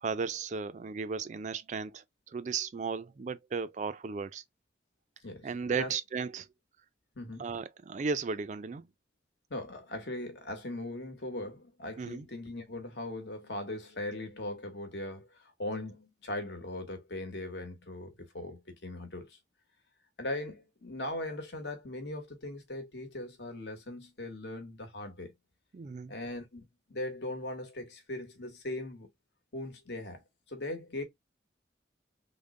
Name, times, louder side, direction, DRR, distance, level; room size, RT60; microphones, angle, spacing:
voice 1, 0.0-2.0 2.3-4.4 5.4-6.5 7.4-8.9 12.0-12.3 25.7-26.1, right 5 dB, 40° right, 0.3 m, -35 dB
voice 2, 5.2-5.9 7.1-7.4 9.5-19.4 20.2-25.3 26.1-29.1 29.5-30.2 30.5-31.0, left 1 dB, 70° left, 1.1 m, -39 dB
3.6 x 2.1 x 3.6 m
head